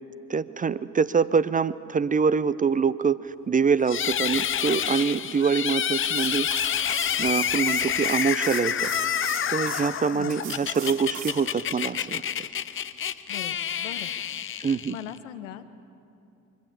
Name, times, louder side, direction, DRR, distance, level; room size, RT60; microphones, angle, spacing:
voice 1, 0.3-6.8 7.2-12.2 14.6-15.0, right 5 dB, 20° right, 16 dB, 0.5 m, -25 dB
sound 1, 3.9-15.2, left 9 dB, 30° left, 0.6 m, -28 dB
sound 2, 6.0-9.8 10.3-11.4, right 7 dB, 75° right, 2.7 m, -38 dB
voice 2, 13.3-14.1 14.9-15.7, left 12 dB, 75° left, 11 dB, 1.0 m, -39 dB
24.0 x 15.5 x 8.5 m, 2.7 s
figure-of-eight pair, 45°, 39 cm